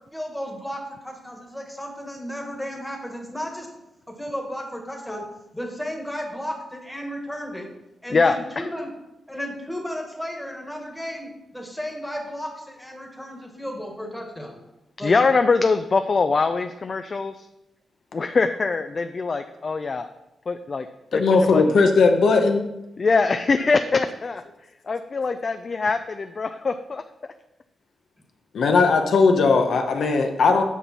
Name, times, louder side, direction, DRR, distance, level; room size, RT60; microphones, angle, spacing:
voice 1, 0.1-3.7 4.1-5.3 5.5-7.7 8.0-8.9 9.3-14.6 15.0-15.1 21.4-21.5, equal, 5° left, 2 dB, 1.5 m, -34 dB
voice 2, 8.1-8.7 15.0-17.4 18.1-20.1 20.5-20.9 21.1-21.2 21.5-21.6 23.0-24.4 24.9-27.0, left 4 dB, 40° left, 8 dB, 0.4 m, -23 dB
voice 3, 21.1-22.7 28.5-30.6, left 4 dB, 75° left, 4 dB, 0.9 m, -18 dB
8.4 x 5.3 x 4.2 m, 0.92 s
wide cardioid pair, 125°, 0 cm